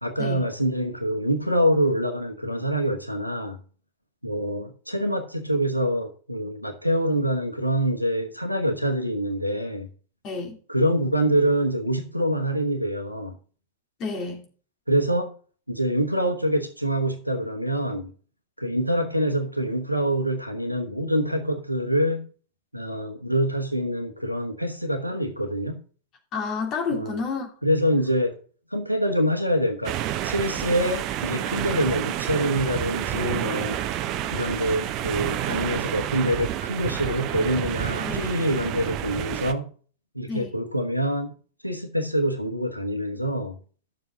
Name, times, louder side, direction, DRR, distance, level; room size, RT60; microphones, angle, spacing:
voice 1, 0.0-3.6 4.2-9.9 10.7-13.3 14.9-15.3 15.7-18.1 18.6-22.3 22.7-25.8 26.9-27.2 27.6-28.4 28.7-33.8 34.3-39.7 40.1-41.3 41.6-43.6, equal, 90° right, 1.1 m, -25 dB
voice 2, 10.2-10.6 14.0-14.5 26.3-27.5 38.0-38.3 40.3-40.5, left 4 dB, 35° left, 3.1 m, -30 dB
sound 1, 29.8-39.5, right 11 dB, 40° right, 0.8 m, -29 dB
12.0 x 7.0 x 3.9 m
figure-of-eight pair, 90°, 0 cm